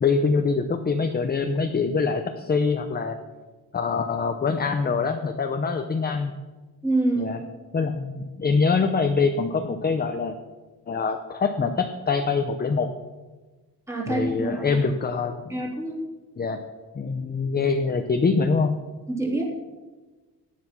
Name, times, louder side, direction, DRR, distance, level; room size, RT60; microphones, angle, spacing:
voice 1, 0.0-3.2 3.7-6.3 7.2-7.4 7.7-10.4 10.9-12.9 14.1-15.4 16.4-16.6 16.9-18.8, left 4 dB, 25° left, 6 dB, 0.7 m, -24 dB
voice 2, 6.8-7.4 13.9-14.7 15.5-16.0 19.1-19.5, right 2 dB, 5° right, -2 dB, 3.2 m, -26 dB
17.0 x 10.5 x 6.0 m, 1.3 s
wide cardioid pair, 175°, 40 cm